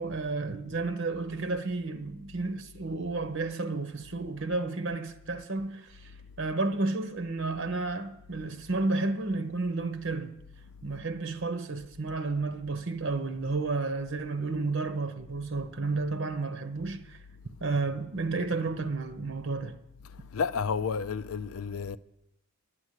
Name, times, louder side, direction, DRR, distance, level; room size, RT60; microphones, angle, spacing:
voice 1, 0.0-6.1 6.4-10.4 10.8-17.2 17.6-19.8, right 3 dB, 65° right, 1.0 m, -32 dB
voice 2, 20.3-22.0, left 6 dB, 80° left, 0.5 m, -31 dB
10.5 x 9.3 x 8.2 m
head